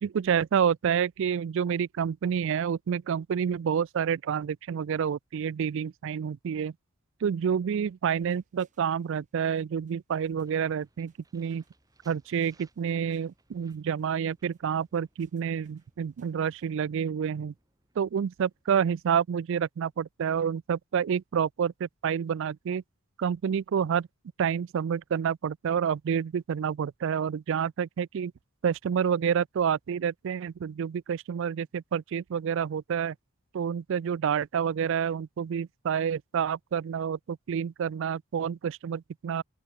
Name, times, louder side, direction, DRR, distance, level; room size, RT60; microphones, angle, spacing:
voice 1, 0.0-6.7 7.2-11.6 12.1-17.5 18.0-22.8 23.2-24.1 24.4-28.3 28.6-33.2 33.5-39.4, right 7 dB, 60° right, 0.3 m, -28 dB
sound 1, 8.1-16.8, right 5 dB, 35° right, 6.3 m, -75 dB
sound 2, 10.4-20.2, right 2 dB, 15° right, 4.8 m, -67 dB
open air
head